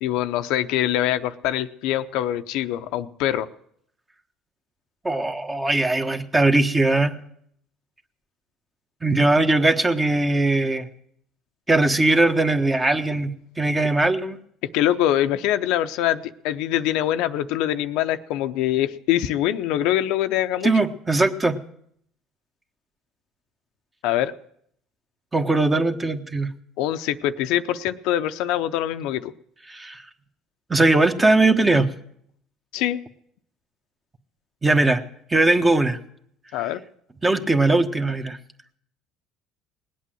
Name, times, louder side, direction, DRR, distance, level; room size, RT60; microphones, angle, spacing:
voice 1, 0.0-3.5 14.7-20.7 24.0-24.3 26.8-29.3 32.7-33.0 36.5-36.8, left 12 dB, 75° left, 10 dB, 0.6 m, -24 dB
voice 2, 5.0-7.2 9.0-10.9 11.7-14.4 20.6-21.6 25.3-26.5 29.7-30.0 30.7-31.9 34.6-35.0 35.3-36.0 37.2-38.4, right 2 dB, 20° right, 7 dB, 1.3 m, -20 dB
19.5 x 8.5 x 7.7 m, 0.69 s
supercardioid pair, 80°, 0 cm